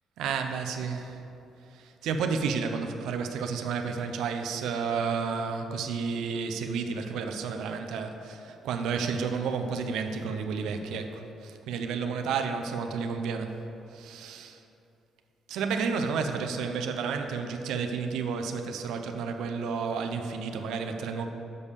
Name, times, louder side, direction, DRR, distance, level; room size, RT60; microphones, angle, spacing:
voice 1, 0.2-1.2 1.7-13.6 13.9-14.6 15.5-21.3, right 5 dB, 85° right, 5 dB, 0.6 m, -31 dB
6.8 x 5.4 x 6.6 m, 2.8 s
cardioid pair, 90°, 0 cm